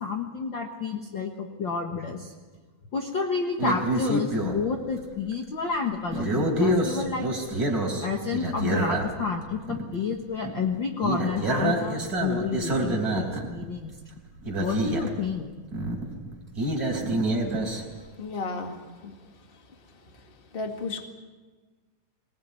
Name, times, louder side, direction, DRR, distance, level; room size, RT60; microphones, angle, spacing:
voice 1, 0.0-2.3 2.9-7.3 8.0-13.9 14.6-15.5, left 5 dB, 45° left, 2 dB, 1.8 m, -30 dB
sound 1, 3.6-4.6 5.1-5.3 6.1-9.4 9.7-9.8 10.1-10.2 10.4-10.8 11.0-13.6 14.2-14.3 14.4-15.2 15.7-17.8, right 1 dB, 30° right, 4.3 m, -27 dB
voice 2, 18.2-19.1 20.5-21.1, left 3 dB, 20° left, 4 dB, 1.9 m, -34 dB
22.5 x 19.5 x 9.3 m, 1.4 s
omnidirectional pair, 3.4 m